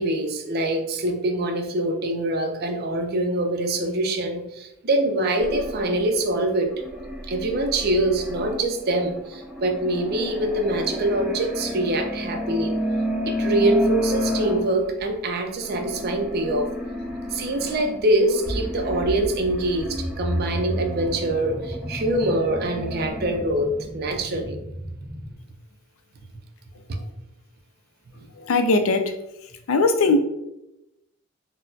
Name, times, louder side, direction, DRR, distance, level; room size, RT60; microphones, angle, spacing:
voice 1, 0.0-6.7 7.3-12.7 13.3-16.7 17.3-24.6, right 1 dB, 50° right, 5 dB, 0.5 m, -24 dB
sound 1, 5.4-15.1 15.6-23.4, left 1 dB, 5° right, 1.3 m, -31 dB
sound 2, 18.5-25.3, equal, 15° left, 0.4 m, -33 dB
voice 2, 28.5-29.0 29.7-30.2, left 3 dB, 80° left, 8 dB, 0.4 m, -19 dB
4.0 x 2.0 x 2.7 m, 0.89 s
head